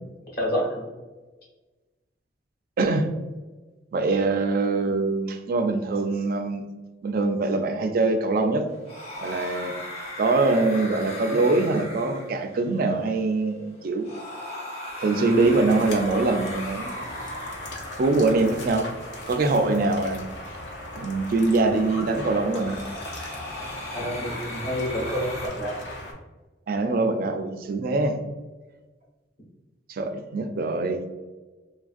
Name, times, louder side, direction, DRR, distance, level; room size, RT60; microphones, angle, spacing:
voice 1, 0.3-0.8 23.9-25.7, equal, 55° left, -5 dB, 1.1 m, -28 dB
voice 2, 2.8-3.1 3.9-6.6 7.0-8.7 9.2-9.7 10.2-14.1 15.0-17.0 18.0-18.9 19.3-20.2 20.9-22.8 26.7-28.2 29.9-31.0, right 3 dB, 50° right, 7 dB, 0.3 m, -23 dB
sound 1, 8.7-25.5, left 1 dB, 35° left, 0.6 m, -39 dB
sound 2, 15.3-26.1, left 1 dB, 70° left, 0.7 m, -38 dB
3.2 x 2.4 x 2.4 m, 1.2 s
head